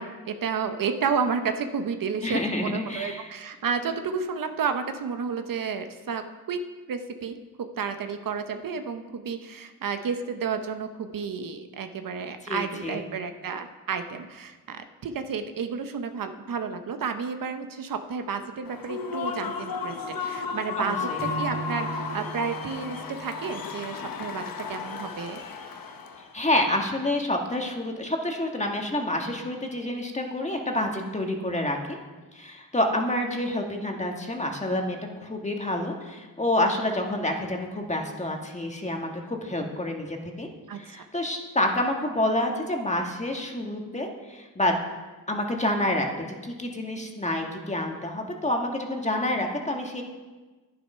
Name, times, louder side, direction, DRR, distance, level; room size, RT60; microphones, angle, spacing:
voice 1, 0.0-6.6 6.9-7.4 7.8-25.4 40.7-41.1, right 6 dB, 70° right, 7 dB, 0.9 m, -31 dB
voice 2, 2.2-3.3 12.4-13.0 20.8-21.2 26.3-32.0 32.3-40.5 40.7-44.8 45.3-46.1 46.4-50.0, left 1 dB, 20° left, 2 dB, 1.7 m, -28 dB
Human voice / Cheering / Applause, 18.6-26.3, left 5 dB, 75° left, 1.1 m, -34 dB
Acoustic guitar / Strum, 21.2-24.5, right 5 dB, 25° right, 3.0 m, -38 dB
10.0 x 10.0 x 5.6 m, 1.3 s
cardioid pair, 80°, 34 cm